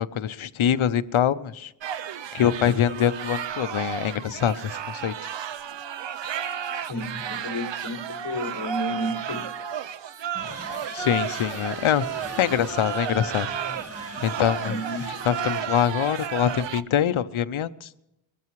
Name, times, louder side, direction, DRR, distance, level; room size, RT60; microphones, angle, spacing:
voice 1, 0.0-1.7 2.3-5.1 10.7-12.0 12.4-13.5 14.2-14.7 15.3-17.9, left 10 dB, 75° left, 0.7 m, -24 dB
sound 1, 1.8-16.8, right 8 dB, 60° right, 0.6 m, -33 dB
voice 2, 6.8-9.5 14.6-15.1, equal, 50° left, 1.7 m, -32 dB
sound 2, 10.3-15.7, right 1 dB, 30° right, 1.7 m, -39 dB
22.5 x 14.0 x 3.1 m
wide cardioid pair, 145°, 49 cm